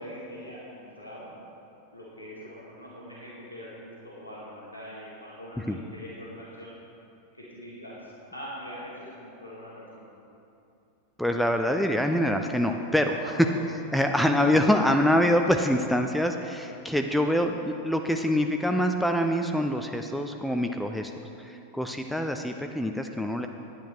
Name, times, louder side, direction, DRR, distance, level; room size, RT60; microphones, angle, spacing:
voice 1, 0.0-1.3 1.9-6.7 7.3-10.1 13.1-13.3 22.2-22.3, equal, 90° left, -8 dB, 1.9 m, -43 dB
voice 2, 11.2-13.3 13.9-21.1 21.4-23.5, equal, ahead, 5 dB, 0.5 m, -25 dB
10.5 x 10.0 x 4.5 m, 2.8 s
figure-of-eight pair, 90°, 0 cm